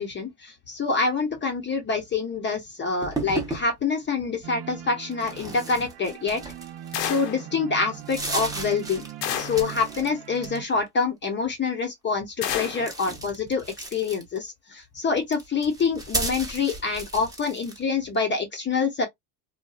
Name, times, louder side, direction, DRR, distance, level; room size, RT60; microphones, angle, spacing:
voice 1, 0.0-6.4 7.0-9.0 9.3-13.6 13.9-19.1, left 4 dB, 25° left, 0.7 m, -26 dB
sound 1, 3.0-3.7 5.1-7.1 7.5-7.6 7.9-10.1 10.3-10.9 12.4-14.5 15.2-17.8, right 2 dB, 10° right, 0.7 m, -34 dB
sound 2, 4.4-10.6, right 12 dB, 70° right, 0.7 m, -41 dB
sound 3, 6.9-7.5 9.2-9.7 12.4-12.9, left 10 dB, 80° left, 0.8 m, -30 dB
2.7 x 2.2 x 2.3 m
supercardioid pair, 120°, 47 cm